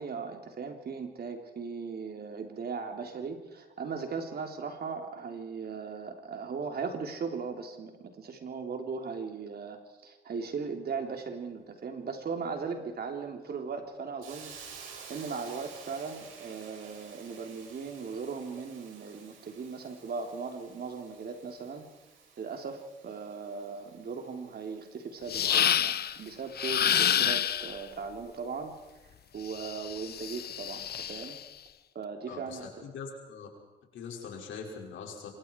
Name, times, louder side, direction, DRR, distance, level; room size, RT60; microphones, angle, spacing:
voice 1, 0.0-14.6 15.1-21.9 22.4-28.7 29.3-31.4 32.0-32.7, right 5 dB, 55° right, 4 dB, 3.7 m, -38 dB
Hiss, 14.2-29.0, right 5 dB, 85° right, 5.9 m, -53 dB
sound 1, 25.3-26.2 26.6-27.8 29.5-31.4, left 9 dB, 55° left, 0.8 m, -28 dB
voice 2, 32.3-33.5 33.9-35.3, left 5 dB, 75° left, 0 dB, 6.0 m, -42 dB
26.0 x 25.0 x 4.8 m, 1.1 s
cardioid pair, 90°, 20 cm